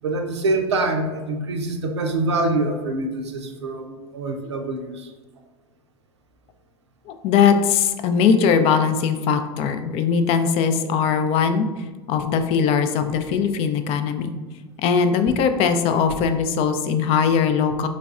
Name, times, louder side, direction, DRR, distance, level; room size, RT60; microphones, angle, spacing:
voice 1, 0.0-5.1, right 2 dB, 90° right, 4 dB, 0.5 m, -25 dB
voice 2, 7.1-11.7 12.1-14.3 14.8-17.9, left 6 dB, 45° left, 8 dB, 0.4 m, -20 dB
4.0 x 3.2 x 2.4 m, 1.3 s
hypercardioid pair, 90°, 14 cm